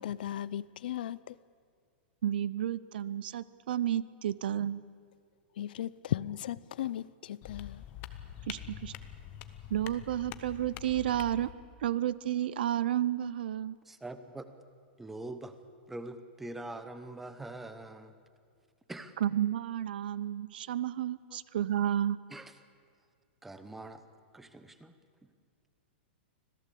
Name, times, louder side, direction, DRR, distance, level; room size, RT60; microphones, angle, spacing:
voice 1, 0.0-1.4 5.6-7.8, left 11 dB, 55° left, 0.5 m, -36 dB
voice 2, 2.2-4.8 8.5-8.9 9.7-11.5 11.8-13.8 19.2-22.2, right 11 dB, 60° right, 0.7 m, -31 dB
sound 1, 7.4-11.5, left 11 dB, 25° left, 0.9 m, -45 dB
voice 3, 13.8-14.5 15.0-15.6 15.9-18.1 18.9-19.2 21.3-21.4 22.3-22.6 23.4-24.0 24.3-25.0 25.2-25.3, right 2 dB, 5° right, 0.8 m, -44 dB
25.5 x 17.0 x 8.4 m
supercardioid pair, 175°, 6 cm